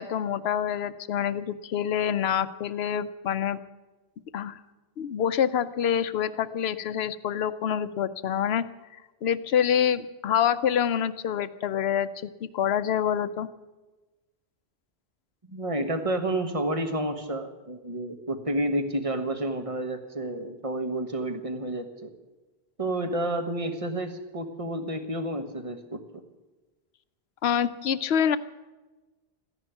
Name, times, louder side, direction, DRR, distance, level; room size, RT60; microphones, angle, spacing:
voice 1, 0.0-3.6 4.3-4.6 5.0-8.6 9.2-13.5 27.4-28.4, left 9 dB, 75° left, 14 dB, 0.9 m, -26 dB
voice 2, 15.5-22.1 22.8-26.0, right 1 dB, 30° right, 7 dB, 1.5 m, -30 dB
14.5 x 10.5 x 9.4 m, 1.2 s
omnidirectional pair, 1.1 m